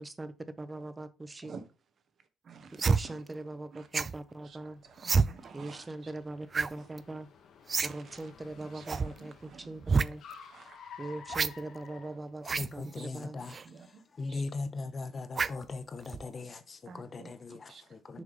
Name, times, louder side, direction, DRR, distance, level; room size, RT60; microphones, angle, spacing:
voice 1, 0.0-1.6 2.7-4.8 5.5-7.3 7.8-10.2 11.0-12.5 12.7-13.4 18.1-18.2, right 2 dB, 20° right, 0.8 m, -41 dB
voice 2, 2.4-3.2 3.7-3.9 4.4-6.1 6.8-6.9 7.8-8.3 8.6-10.0 10.5-10.8 11.3-11.5 12.8-13.3 13.6-14.0 14.3-14.4 16.9-18.2, right 5 dB, 55° right, 1.0 m, -51 dB
sound 1, 2.8-3.0 3.9-4.2 5.0-5.3 6.5-6.7 7.0-7.1 7.7-7.9 8.2-8.3 8.9-9.1 9.8-10.1 11.3-11.5 12.4-12.7 13.5-13.6 15.3-15.6 16.1-16.3, right 4 dB, 35° right, 0.4 m, -27 dB
Car, 3.2-12.8, left 7 dB, 70° left, 1.3 m, -53 dB
voice 3, 12.6-13.5 14.2-18.2, left 3 dB, 40° left, 0.8 m, -39 dB
6.4 x 3.5 x 5.4 m
cardioid pair, 90°, 0 cm